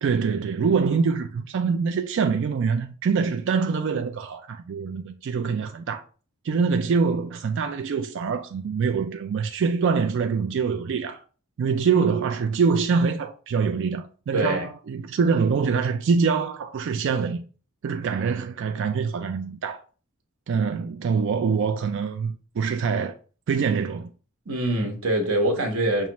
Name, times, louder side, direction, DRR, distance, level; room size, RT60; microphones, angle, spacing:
voice 1, 0.0-6.0 6.4-11.2 11.6-17.4 17.8-19.8 20.5-23.1 23.5-24.1, right 5 dB, 60° right, 0.3 m, -24 dB
voice 2, 14.3-14.6 24.5-26.1, right 1 dB, 85° right, 1.0 m, -24 dB
5.4 x 2.4 x 3.0 m
head